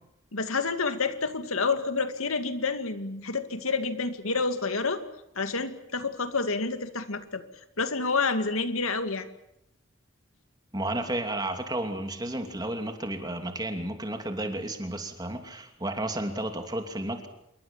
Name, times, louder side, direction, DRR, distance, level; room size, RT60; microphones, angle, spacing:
voice 1, 0.3-5.0 5.4-7.4 7.8-9.3, left 4 dB, 85° left, 9 dB, 2.3 m, -28 dB
voice 2, 10.7-17.3, right 1 dB, 20° right, 5 dB, 2.8 m, -32 dB
27.0 x 23.0 x 7.5 m, 0.82 s
head